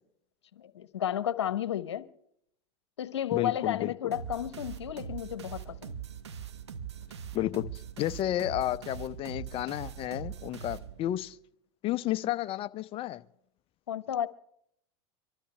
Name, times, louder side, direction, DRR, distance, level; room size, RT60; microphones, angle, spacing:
voice 1, 0.7-2.1 3.0-5.9 13.9-14.3, left 10 dB, 85° left, 1.0 m, -32 dB
voice 2, 3.3-4.1 7.3-11.4 11.8-13.2, left 14 dB, 40° left, 0.8 m, -32 dB
sound 1, 4.1-11.3, right 8 dB, 90° right, 1.2 m, -42 dB
25.0 x 13.0 x 3.3 m
hypercardioid pair, 95°, 14 cm